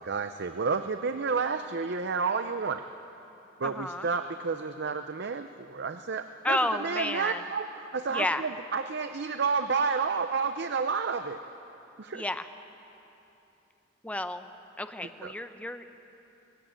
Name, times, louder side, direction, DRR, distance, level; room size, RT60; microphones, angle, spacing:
voice 1, 0.0-2.8 3.6-11.4 12.0-12.2 15.2-15.3, right 5 dB, 60° right, 8 dB, 0.6 m, -30 dB
voice 2, 3.6-4.1 6.4-7.4 8.1-8.5 12.1-12.5 14.0-14.4 14.8-16.0, left 1 dB, 5° left, 8 dB, 0.7 m, -31 dB
19.5 x 16.0 x 9.0 m, 2.9 s
head